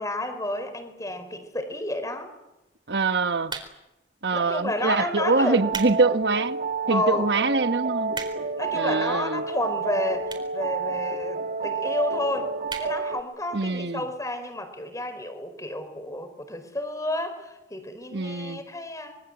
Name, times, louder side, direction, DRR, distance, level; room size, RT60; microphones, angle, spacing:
voice 1, 0.0-2.3 4.3-5.7 6.9-7.3 8.6-19.2, left 1 dB, 20° left, 4.7 m, -31 dB
voice 2, 2.9-3.5 4.2-6.6 6.9-8.1 8.7-9.4 13.5-14.0 18.1-18.6, right 3 dB, 70° right, 1.3 m, -24 dB
sound 1, 3.4-4.0 4.7-4.9 5.4-6.0 6.4-6.5 7.1-7.2 7.4-7.5 7.8-8.6 9.4-9.5 10.2-10.6 10.9-11.0 11.2-11.3 11.5-11.6 11.9-12.2 12.6-12.9 13.3-13.4 13.6-13.7, right 4 dB, 25° right, 4.2 m, -36 dB
sound 2, 5.1-13.2, right 4 dB, 50° right, 1.5 m, -30 dB
26.0 x 24.0 x 8.1 m
head